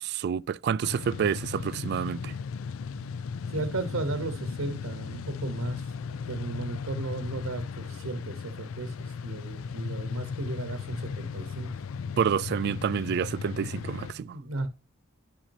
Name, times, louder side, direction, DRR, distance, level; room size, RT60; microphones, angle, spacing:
voice 1, 0.0-2.3 12.2-14.4, right 7 dB, 50° right, 0.3 m, -28 dB
sound 1, 0.8-14.1, left 5 dB, 75° left, 0.4 m, -36 dB
voice 2, 3.5-11.7 14.0-14.7, right 2 dB, 70° right, 1.0 m, -35 dB
11.0 x 6.0 x 2.7 m
head